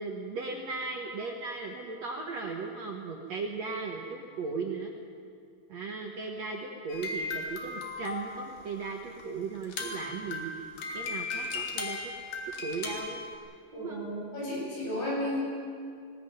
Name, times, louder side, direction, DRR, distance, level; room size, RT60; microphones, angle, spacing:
voice 1, 0.0-4.9 5.7-10.6 10.9-12.1 12.6-13.2 13.7-14.1, right 4 dB, 60° right, 1 dB, 1.8 m, -37 dB
sound 1, 6.9-8.6 9.2-9.3 9.6-13.3, left 3 dB, 60° left, 3.7 m, -37 dB
voice 2, 13.7-15.4, left 1 dB, 80° left, -5 dB, 10.0 m, -33 dB
19.5 x 18.5 x 9.3 m, 2.3 s
omnidirectional pair, 4.7 m